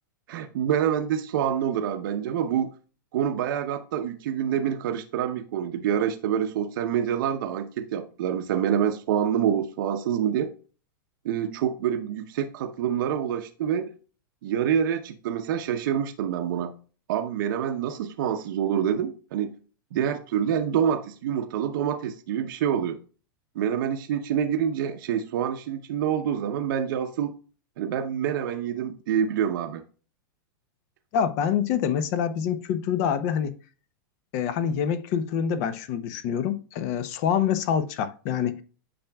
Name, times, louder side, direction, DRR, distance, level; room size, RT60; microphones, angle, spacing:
voice 1, 0.3-2.7 3.1-10.5 11.2-13.9 14.4-16.7 17.1-19.5 19.9-23.0 23.5-27.3 27.8-29.8, right 9 dB, 65° right, 0.8 m, -26 dB
voice 2, 31.1-33.5 34.3-38.6, left 8 dB, 45° left, 0.8 m, -26 dB
8.7 x 5.8 x 2.3 m
supercardioid pair, 145°, 12 cm